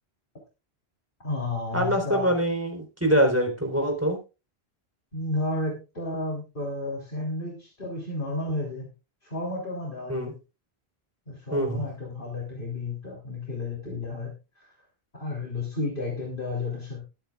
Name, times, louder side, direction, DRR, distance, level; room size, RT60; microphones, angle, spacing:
voice 1, 1.2-2.4 5.1-8.9 9.2-10.3 11.3-14.7 15.1-17.0, left 2 dB, 55° left, -3 dB, 3.7 m, -32 dB
voice 2, 1.7-4.2 10.1-10.3 11.5-11.8, right 1 dB, 15° right, 3 dB, 4.0 m, -24 dB
22.0 x 9.0 x 2.4 m, 0.30 s
omnidirectional pair, 1.1 m